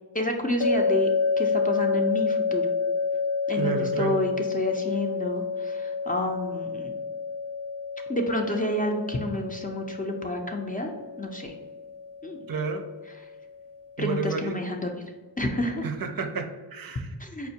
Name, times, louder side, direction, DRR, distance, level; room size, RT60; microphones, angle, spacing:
voice 1, 0.1-1.1 1.4-2.7 3.5-6.9 8.1-10.9 11.2-11.6 12.2-12.4 13.1-13.2 14.0-15.0 15.4-15.9 17.2-17.5, left 1 dB, 20° left, 2 dB, 0.4 m, -29 dB
sound 1, 0.6-13.7, left 5 dB, 85° left, 0.6 m, -29 dB
voice 2, 3.5-4.2 12.5-12.8 14.0-14.6 15.8-17.1, right 5 dB, 55° right, 6 dB, 0.5 m, -30 dB
4.2 x 2.4 x 2.7 m, 1.2 s
cardioid pair, 45°, 42 cm